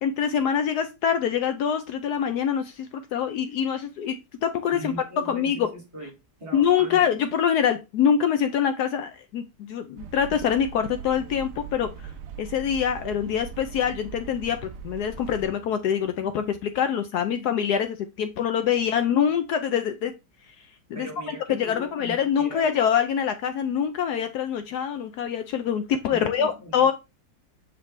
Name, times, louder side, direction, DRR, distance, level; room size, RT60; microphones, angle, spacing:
voice 1, 0.0-4.9 5.3-5.7 6.5-11.9 12.4-20.1 20.9-21.1 21.6-26.9, left 8 dB, 75° left, 9 dB, 1.1 m, -25 dB
voice 2, 4.7-6.1 6.4-7.1 18.7-19.0 20.9-22.7 26.1-26.9, right 1 dB, 20° right, -1 dB, 2.3 m, -40 dB
sound 1, 10.0-15.5, right 7 dB, 80° right, 0.6 m, -40 dB
7.6 x 4.1 x 3.2 m, 0.26 s
omnidirectional pair, 1.9 m